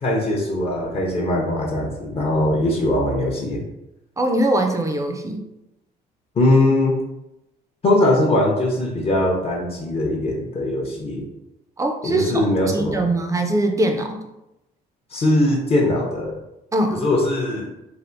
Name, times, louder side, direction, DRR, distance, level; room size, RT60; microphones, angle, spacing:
voice 1, 0.0-3.6 6.4-7.0 7.8-11.3 12.0-13.1 15.1-16.3 16.9-17.7, left 1 dB, 35° left, -1 dB, 0.6 m, -20 dB
voice 2, 4.2-5.4 11.8-14.2 16.7-17.0, right 1 dB, 20° right, 4 dB, 0.4 m, -22 dB
3.3 x 2.4 x 2.6 m, 0.91 s
cardioid pair, 110°, 17 cm